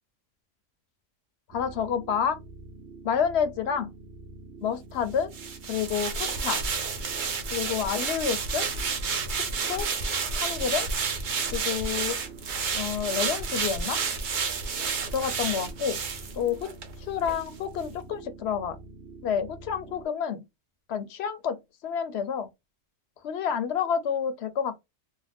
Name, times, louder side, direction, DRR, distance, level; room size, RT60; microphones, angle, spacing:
voice 1, 1.5-2.4 3.0-3.9 4.6-5.3 5.7-6.6 7.5-8.7 9.4-9.9 10.3-10.9 11.5-12.2 12.7-14.0 15.1-16.0 16.3-16.7 17.0-18.8 19.2-20.4 20.9-22.5 23.2-24.8, left 7 dB, 65° left, 0.8 m, -29 dB
sound 1, 1.5-20.1, right 2 dB, 80° right, 1.0 m, -46 dB
sound 2, 5.3-16.9 17.2-17.4, right 5 dB, 55° right, 0.6 m, -30 dB
2.5 x 2.1 x 3.3 m
omnidirectional pair, 1.3 m